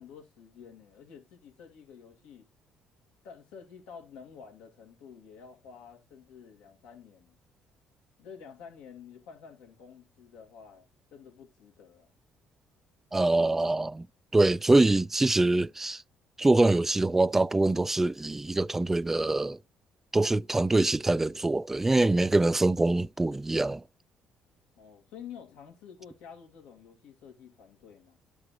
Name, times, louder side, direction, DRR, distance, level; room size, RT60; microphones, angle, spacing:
voice 1, 0.0-2.5 3.2-7.4 8.2-12.1 24.8-28.2, left 7 dB, 90° left, 2.3 m, -50 dB
voice 2, 13.1-14.1 14.3-16.0 16.4-19.6 20.1-23.8, right 2 dB, 15° right, 0.3 m, -24 dB
11.5 x 4.8 x 2.6 m
cardioid pair, 85°, 2 cm